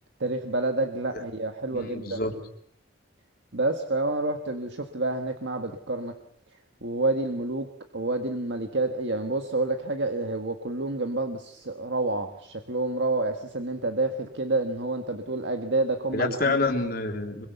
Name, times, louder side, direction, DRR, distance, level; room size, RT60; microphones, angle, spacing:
voice 1, 0.2-2.3 3.5-6.1 6.8-7.7 7.9-16.6, right 2 dB, 65° right, 6 dB, 1.6 m, -28 dB
voice 2, 1.7-2.3 16.1-17.5, left 3 dB, 50° left, 2 dB, 3.6 m, -27 dB
26.0 x 22.5 x 6.9 m, 0.70 s
head